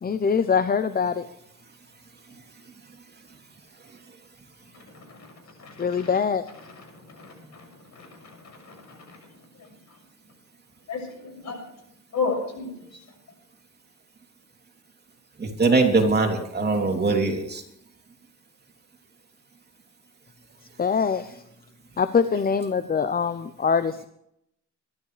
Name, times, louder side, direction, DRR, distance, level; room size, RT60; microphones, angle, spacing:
voice 1, 0.0-1.3 5.8-6.5 20.8-21.4 22.0-24.0, left 6 dB, 30° left, 12 dB, 0.8 m, -23 dB
voice 2, 5.6-6.1 7.2-7.6 7.9-8.1 8.6-8.7 10.9-11.6 12.1-12.7, left 4 dB, 65° left, 2 dB, 6.7 m, -31 dB
voice 3, 15.4-17.6, right 3 dB, 35° right, 2 dB, 3.1 m, -22 dB
22.5 x 12.5 x 3.4 m, 0.76 s
cardioid pair, 90°, 30 cm